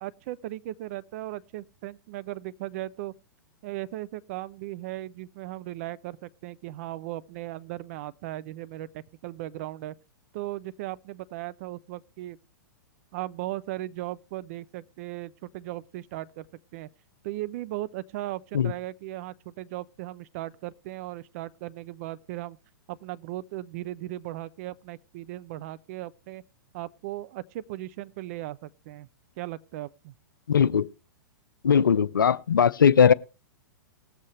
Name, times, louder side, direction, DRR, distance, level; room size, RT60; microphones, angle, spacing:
voice 1, 0.0-3.1 3.6-9.9 10.3-12.4 13.1-16.5 16.7-16.9 17.2-22.6 22.9-26.4 26.7-29.1 29.4-30.1, right 15 dB, 45° right, 0.6 m, -37 dB
voice 2, 30.5-30.9 31.6-33.1, left 7 dB, 75° left, 0.5 m, -19 dB
19.5 x 7.5 x 3.2 m
figure-of-eight pair, 105°, 11 cm